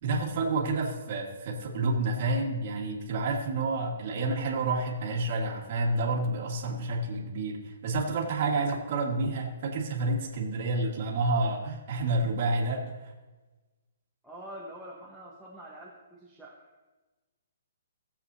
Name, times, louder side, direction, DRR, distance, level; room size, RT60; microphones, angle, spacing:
voice 1, 0.0-12.8, right 2 dB, 45° right, -2 dB, 1.6 m, -29 dB
voice 2, 14.2-16.7, right 1 dB, ahead, -7 dB, 1.1 m, -45 dB
18.0 x 7.5 x 2.7 m, 1.2 s
hypercardioid pair, 160°, 0 cm